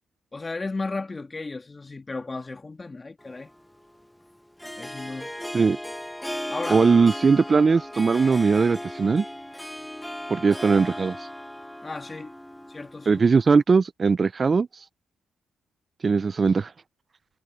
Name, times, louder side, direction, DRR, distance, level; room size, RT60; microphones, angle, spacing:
voice 1, 0.3-3.5 4.8-5.3 6.5-6.8 11.8-12.3 12.7-13.2, left 3 dB, 25° left, 2.0 m, -34 dB
Harp, 3.2-13.6, left 1 dB, 5° left, 1.0 m, -37 dB
voice 2, 6.7-9.2 10.3-11.2 13.1-14.7 16.0-16.7, right 5 dB, 35° right, 0.3 m, -20 dB
cardioid pair, 90°, 0 cm